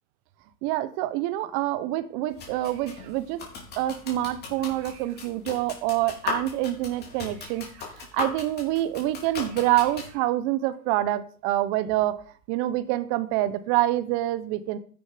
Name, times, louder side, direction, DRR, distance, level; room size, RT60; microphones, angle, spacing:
voice 1, 0.6-3.4 3.8-7.7 8.0-14.8, right 15 dB, 25° right, 14 dB, 1.1 m, -26 dB
sound 1, 2.3-10.1, left 4 dB, 20° left, 4.1 m, -37 dB
13.0 x 10.5 x 5.2 m, 0.43 s
hypercardioid pair, 145°, 50 cm